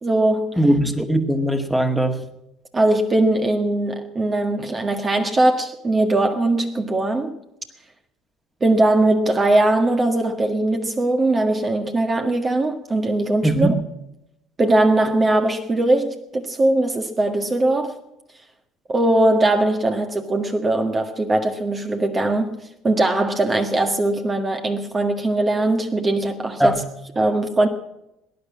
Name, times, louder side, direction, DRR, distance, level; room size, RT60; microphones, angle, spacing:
voice 1, 0.0-0.6 2.7-7.3 8.6-13.7 14.6-18.0 18.9-22.6 22.8-26.8 27.2-27.7, right 2 dB, 30° right, 1.7 m, -20 dB
voice 2, 0.6-2.2 13.4-13.7 26.6-26.8, right 1 dB, 5° right, 2.0 m, -19 dB
18.5 x 10.0 x 7.4 m
hypercardioid pair, 65°, 0 cm